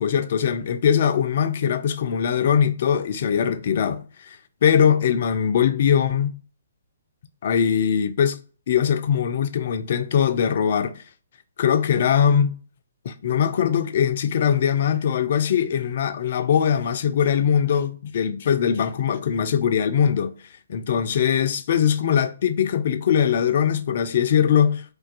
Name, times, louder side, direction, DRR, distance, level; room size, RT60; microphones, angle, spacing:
voice 1, 0.0-6.4 7.4-8.4 8.7-11.0 11.6-12.6 13.0-20.3 20.7-24.8, left 8 dB, 45° left, 0.3 m, -21 dB
2.3 x 2.2 x 2.4 m
figure-of-eight pair, 130°, 0 cm